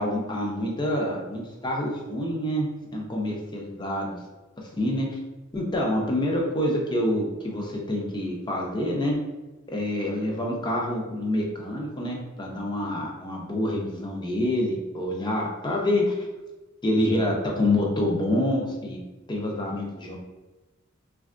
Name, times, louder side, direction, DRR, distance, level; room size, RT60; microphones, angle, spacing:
voice 1, 0.0-4.2 4.8-5.2 5.5-9.2 9.7-16.3 16.8-19.0 19.3-20.2, left 1 dB, 20° left, -1 dB, 0.5 m, -27 dB
3.5 x 2.2 x 2.4 m, 1.1 s
head